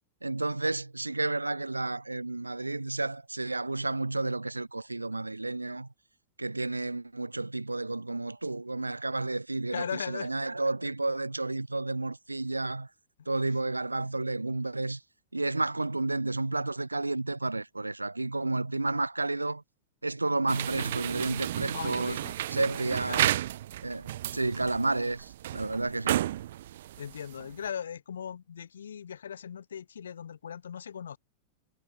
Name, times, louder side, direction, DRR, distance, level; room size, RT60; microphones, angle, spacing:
voice 1, 0.2-5.9 6.4-12.9 13.3-15.0 15.3-19.6 20.0-22.2 22.5-23.4 23.8-26.2, right 2 dB, 85° right, 4.0 m, -31 dB
voice 2, 9.7-10.3 13.2-13.3 21.7-22.3 23.1-23.3 27.0-31.2, left 8 dB, 65° left, 4.2 m, -38 dB
sound 1, 20.5-27.7, right 13 dB, 60° right, 1.0 m, -33 dB
figure-of-eight pair, 90°, 0 cm